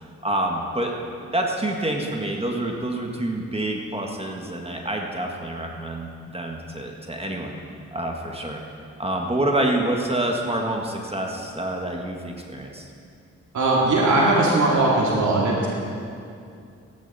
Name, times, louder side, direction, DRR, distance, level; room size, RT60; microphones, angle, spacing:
voice 1, 0.2-0.9 1.3-7.5 7.9-8.6 9.0-12.9, right 1 dB, 20° right, 1 dB, 1.7 m, -27 dB
voice 2, 13.5-15.7, right 2 dB, 75° right, -3 dB, 2.2 m, -19 dB
15.0 x 10.5 x 4.2 m, 2.4 s
supercardioid pair, 50°, 30 cm